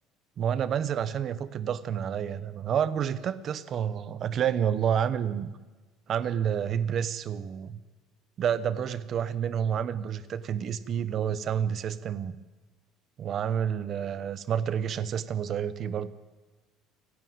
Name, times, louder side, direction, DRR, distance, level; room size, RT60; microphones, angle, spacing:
voice 1, 0.4-5.5 6.1-7.8 8.4-12.4 13.2-16.1, right 8 dB, 35° right, 14 dB, 0.9 m, -29 dB
28.5 x 11.0 x 9.5 m, 1.3 s
cardioid pair, 160°, 0 cm